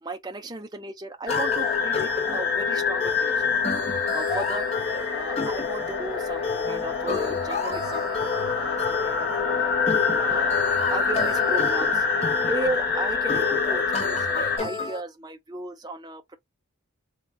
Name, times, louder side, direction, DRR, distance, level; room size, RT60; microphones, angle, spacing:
voice 1, 0.0-3.5 4.1-4.7 5.1-8.1 8.5-9.7 10.1-10.6 10.9-16.4, right 2 dB, 20° right, 0.7 m, -35 dB
sound 1, 1.3-14.6, left 5 dB, 45° left, 1.4 m, -26 dB
sound 2, 1.3-15.0, left 4 dB, 30° left, 0.9 m, -32 dB
3.8 x 3.3 x 3.3 m
head